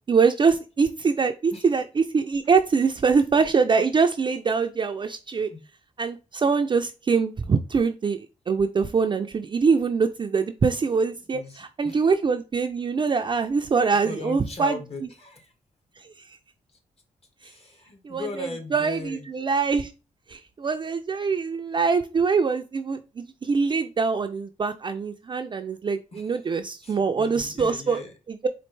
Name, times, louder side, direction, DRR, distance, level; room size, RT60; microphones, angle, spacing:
voice 1, 0.1-5.5 6.0-14.8 16.0-16.4 17.4-17.5 18.0-19.9 20.3-28.0 28.3-28.5, right 5 dB, 35° right, 0.4 m, -24 dB
voice 2, 11.3-12.0 14.0-15.5 17.4-19.3 26.1-26.4 26.8-28.1, left 3 dB, 50° left, 1.3 m, -38 dB
4.3 x 2.5 x 3.2 m
cardioid pair, 70°, 14 cm